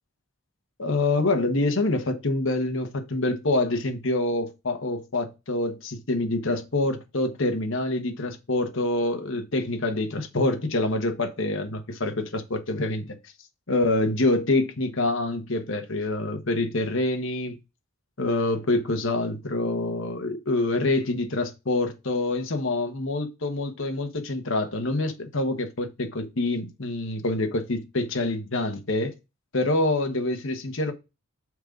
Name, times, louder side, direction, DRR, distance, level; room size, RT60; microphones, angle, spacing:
voice 1, 0.8-13.2 13.7-17.6 18.2-29.1 29.5-30.9, left 2 dB, 60° left, 1.2 m, -26 dB
6.2 x 3.9 x 5.1 m
head